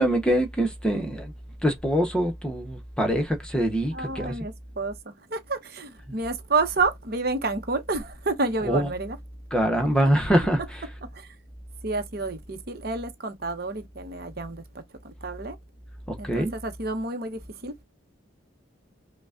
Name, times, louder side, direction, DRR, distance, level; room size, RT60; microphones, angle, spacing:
voice 1, 0.0-1.3 1.6-4.3 8.6-8.9 9.5-10.8 16.2-16.5, equal, 5° left, 0.8 m, -24 dB
voice 2, 3.9-9.2 11.0-11.3 11.8-14.6 15.0-15.6 16.2-17.8, right 3 dB, 50° right, 0.8 m, -29 dB
6.0 x 2.2 x 2.5 m
head